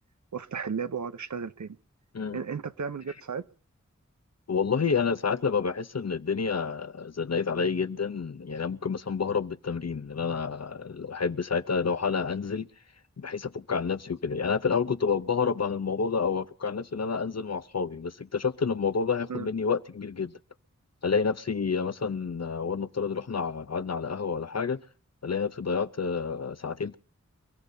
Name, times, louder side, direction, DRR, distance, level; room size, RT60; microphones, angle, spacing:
voice 1, 0.3-1.8 2.3-3.4 19.3-19.5, right 6 dB, 75° right, 0.7 m, -34 dB
voice 2, 4.5-12.7 13.2-20.3 21.0-24.8 25.2-27.0, left 5 dB, 60° left, 0.7 m, -29 dB
29.0 x 15.5 x 2.7 m
wide cardioid pair, 55°, 29 cm